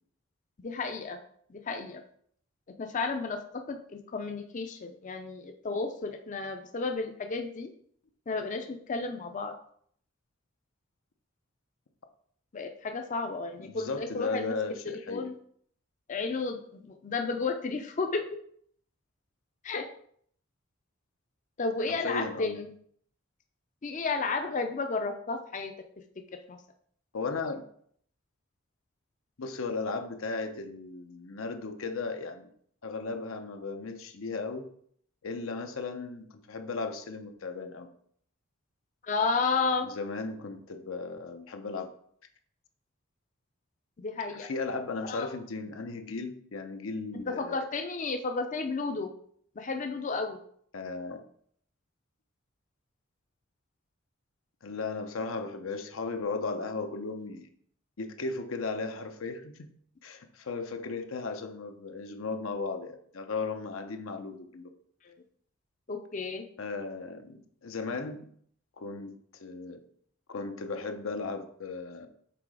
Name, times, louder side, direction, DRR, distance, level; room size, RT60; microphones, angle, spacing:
voice 1, 0.6-1.2 1.5-2.0 2.8-7.7 8.3-9.5 12.5-14.6 15.1-15.3 16.1-18.3 19.6-19.9 21.6-22.7 23.8-25.7 26.5-26.6 39.0-39.9 44.0-44.5 45.1-45.3 47.1-49.1 49.6-50.4 65.0-65.1 65.9-66.4, left 4 dB, 40° left, 5 dB, 0.5 m, -32 dB
voice 2, 13.6-15.3 21.9-22.6 27.1-27.6 29.4-32.5 32.8-34.7 35.2-37.9 39.8-41.9 44.3-47.6 50.7-51.2 54.6-57.5 58.0-59.7 60.0-64.7 66.6-68.3 68.8-69.8 70.3-72.1, left 3 dB, 85° left, 6 dB, 0.8 m, -36 dB
6.0 x 3.8 x 4.7 m, 0.63 s
head